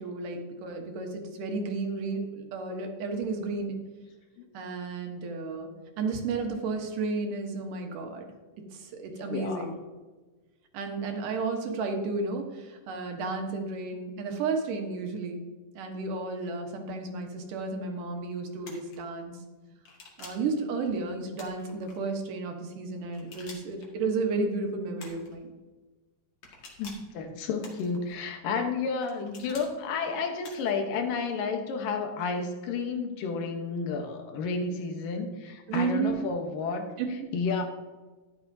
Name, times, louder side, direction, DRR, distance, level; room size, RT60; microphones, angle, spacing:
voice 1, 0.0-3.8 4.5-5.7 6.0-8.3 8.7-9.7 10.7-15.4 15.8-19.3 20.2-25.5 35.7-36.2 37.0-37.3, right 4 dB, 75° right, 3 dB, 2.7 m, -32 dB
voice 2, 9.3-9.7 26.8-36.9 37.3-37.6, left 4 dB, 85° left, 5 dB, 2.8 m, -31 dB
sound 1, 18.6-19.0 19.8-20.5 21.3-22.0 23.1-23.9 25.0-25.4 26.4-27.1 27.6-28.2 29.0-29.7 30.4-30.8, left 3 dB, 55° left, 2.9 m, -48 dB
12.5 x 10.0 x 2.7 m, 1.3 s
omnidirectional pair, 3.8 m